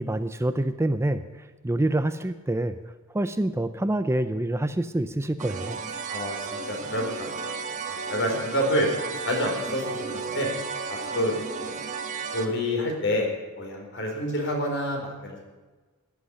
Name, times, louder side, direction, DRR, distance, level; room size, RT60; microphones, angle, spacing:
voice 1, 0.0-2.8 3.1-5.8, right 1 dB, 10° right, 11 dB, 0.5 m, -26 dB
sound 1, 5.4-12.5, right 4 dB, 35° right, 1.3 m, -33 dB
voice 2, 6.1-10.5 10.9-11.7 12.3-13.3 13.6-15.4, equal, 60° left, 1 dB, 4.2 m, -28 dB
13.5 x 8.1 x 10.0 m, 1.3 s
head